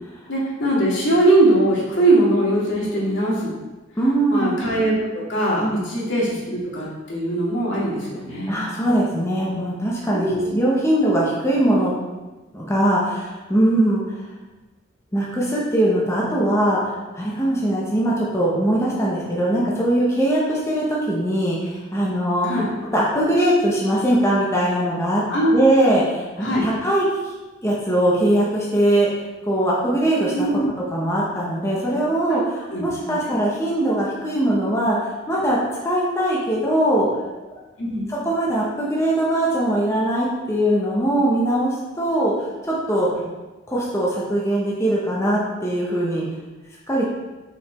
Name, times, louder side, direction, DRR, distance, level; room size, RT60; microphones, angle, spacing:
voice 1, 0.3-3.5 4.3-8.7 10.1-10.5 22.4-22.7 25.3-25.6 26.4-26.6 30.3-30.7 32.7-32.8 33.3-33.4 37.8-38.1, right 1 dB, 65° left, -5 dB, 2.2 m, -21 dB
voice 2, 4.0-4.5 5.6-5.9 8.5-11.9 12.5-14.0 15.1-22.5 22.9-25.2 25.5-27.0 27.6-29.1 29.4-30.5 30.9-35.0 35.3-35.6 35.8-37.1 38.1-42.3 42.6-43.1 43.7-46.2 46.9-47.0, right 1 dB, 15° left, -5 dB, 1.1 m, -21 dB
5.9 x 5.7 x 4.4 m, 1.2 s
head